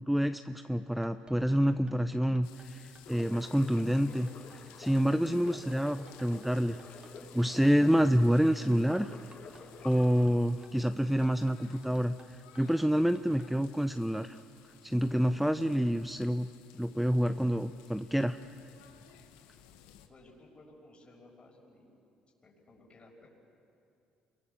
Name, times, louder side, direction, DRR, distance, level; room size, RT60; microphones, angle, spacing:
voice 1, 0.0-4.3 4.8-6.8 7.3-9.1 9.8-14.4 14.8-16.5 16.8-18.4, equal, 5° right, 10 dB, 0.8 m, -28 dB
sound 1, 0.8-13.5, right 3 dB, 30° right, 3.3 m, -57 dB
sound 2, 2.4-20.1, left 10 dB, 85° left, 1.5 m, -58 dB
sound 3, 3.0-10.3, left 5 dB, 60° left, 5.5 m, -51 dB
voice 2, 20.1-22.0 22.4-23.3, left 2 dB, 35° left, -1 dB, 6.1 m, -57 dB
28.0 x 22.5 x 7.1 m, 2.6 s
hypercardioid pair, 65°, 3 cm